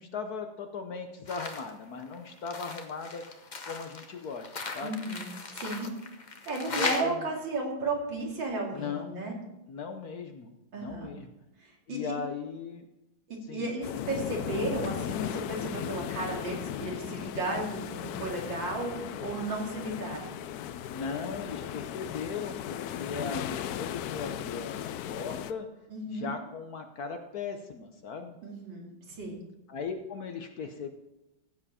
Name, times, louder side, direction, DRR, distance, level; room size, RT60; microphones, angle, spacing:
voice 1, 0.0-3.2 3.6-5.0 6.7-7.3 8.7-9.2 9.7-11.3 11.9-12.9 13.5-13.7 20.9-25.7 26.1-28.4 29.7-30.9, left 5 dB, 60° left, 6 dB, 1.2 m, -38 dB
sound 1, 1.3-1.7 2.0-7.0, left 4 dB, 45° left, 0.6 m, -37 dB
voice 2, 4.8-5.9 6.5-9.3 10.7-11.1 11.6-12.1 13.3-20.4 25.9-26.3 28.4-29.4, right 2 dB, 70° right, -1 dB, 3.2 m, -34 dB
sound 2, 13.8-25.5, left 11 dB, 75° left, 0.8 m, -37 dB
15.5 x 7.7 x 4.2 m, 0.92 s
omnidirectional pair, 2.1 m